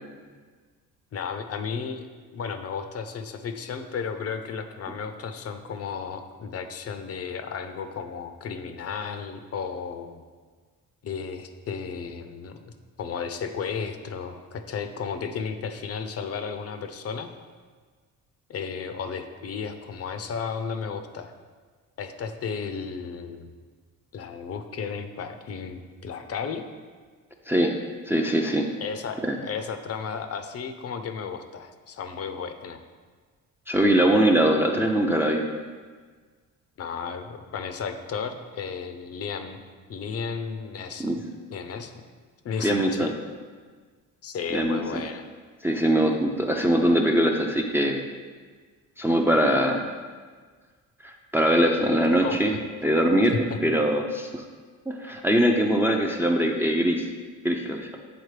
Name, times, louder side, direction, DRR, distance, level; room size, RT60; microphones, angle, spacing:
voice 1, 1.1-2.0 2.3-10.2 11.0-12.7 13.0-17.3 18.5-21.3 22.0-23.5 24.1-26.6 28.8-32.8 36.8-39.6 39.9-41.1 41.5-41.9 42.4-43.1 44.2-45.3 52.2-52.6 53.3-53.6, left 6 dB, 45° left, 8 dB, 0.5 m, -34 dB
voice 2, 28.1-28.6 29.2-29.4 33.7-35.5 41.0-41.2 42.6-43.1 44.5-45.0 45.6-48.0 49.0-49.9 51.0-52.5 52.8-54.4 54.9-57.1 57.4-57.9, right 1 dB, 5° right, 1 dB, 0.4 m, -22 dB
8.1 x 3.9 x 3.2 m, 1.5 s
cardioid pair, 105°, 33 cm